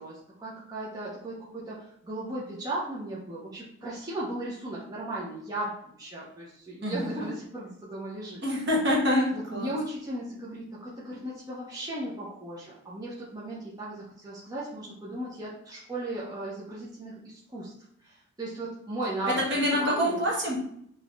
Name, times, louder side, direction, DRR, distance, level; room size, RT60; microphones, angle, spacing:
voice 1, 0.0-8.4 9.3-17.7 18.0-19.4 19.8-20.2, right 1 dB, 15° right, -7 dB, 0.6 m, -36 dB
voice 2, 8.4-9.7 19.5-20.6, equal, 55° right, -3 dB, 1.0 m, -26 dB
3.5 x 2.8 x 2.4 m, 0.70 s
head